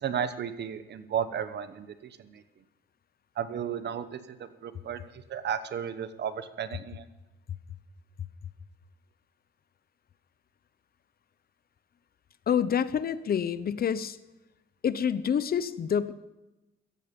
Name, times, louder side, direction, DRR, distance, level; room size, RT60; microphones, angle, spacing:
voice 1, 0.0-2.4 3.4-7.0, right 8 dB, 60° right, 12 dB, 1.1 m, -34 dB
voice 2, 12.5-14.2 14.8-16.1, left 8 dB, 50° left, 15 dB, 0.9 m, -27 dB
16.0 x 14.0 x 5.4 m, 1.0 s
cardioid pair, 90°, 20 cm